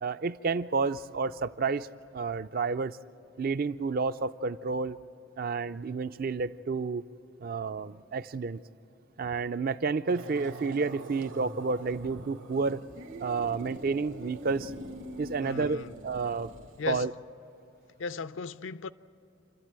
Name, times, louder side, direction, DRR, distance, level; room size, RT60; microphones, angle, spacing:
voice 1, 0.0-1.9 2.1-3.0 3.4-5.0 5.4-7.1 7.4-8.6 9.2-12.8 13.2-14.7 15.2-16.5 16.9-17.1, right 4 dB, 45° right, 0.4 m, -30 dB
sound 1, 10.1-16.8, right 1 dB, 75° right, 1.8 m, -44 dB
voice 2, 15.4-16.0 16.8-17.1 18.0-18.9, left 5 dB, 70° left, 0.5 m, -36 dB
28.0 x 13.0 x 8.9 m
head